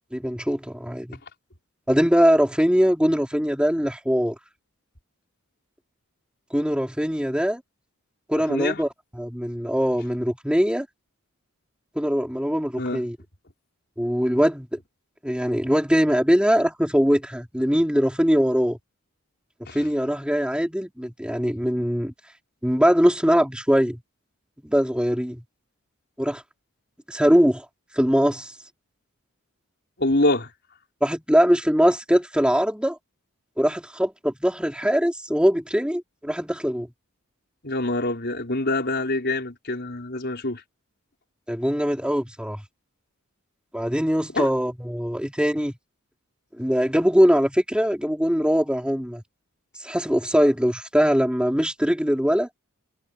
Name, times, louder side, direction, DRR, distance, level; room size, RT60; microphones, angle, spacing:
voice 1, 0.1-1.2 1.9-4.3 6.5-7.6 8.3-8.9 9.2-10.9 11.9-13.2 14.0-14.8 15.2-18.8 19.7-22.1 22.6-24.0 24.6-25.4 26.2-26.4 27.1-27.6 27.9-28.5 31.0-33.0 33.6-36.9 41.5-42.6 43.7-45.8 46.6-49.2 49.8-52.5, equal, 5° right, 3.5 m, -22 dB
voice 2, 8.5-8.8 12.8-13.0 19.6-19.8 30.0-30.5 37.6-40.6 44.3-44.5, left 2 dB, 50° left, 4.9 m, -25 dB
head